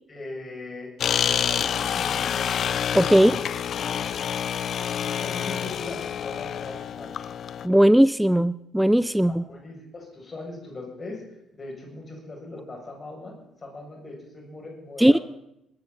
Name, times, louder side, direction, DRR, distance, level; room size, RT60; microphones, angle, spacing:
voice 1, 0.1-0.9 1.2-2.3 3.1-3.5 4.0-4.3 5.0-7.2 9.3-15.2, left 2 dB, 35° left, -1 dB, 7.1 m, -40 dB
sound 1, 1.0-7.7, left 8 dB, 55° left, 0.5 m, -27 dB
voice 2, 2.9-3.3 7.6-9.4 15.0-15.2, right 1 dB, 5° right, 18 dB, 0.4 m, -18 dB
21.0 x 13.5 x 4.2 m, 0.80 s
figure-of-eight pair, 45°, 0 cm